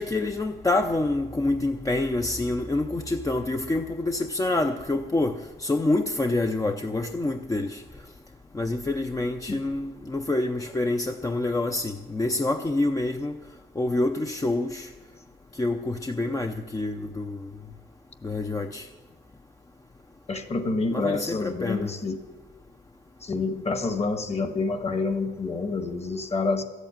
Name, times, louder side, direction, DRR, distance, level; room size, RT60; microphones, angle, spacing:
voice 1, 0.0-7.8 8.5-13.4 13.8-14.9 15.6-17.5 18.2-18.9 20.9-21.9, left 2 dB, 15° left, 0.6 m, -27 dB
voice 2, 20.3-22.2 23.2-26.6, left 3 dB, 30° left, 1.5 m, -28 dB
13.5 x 8.2 x 8.9 m
cardioid pair, 90°, 20 cm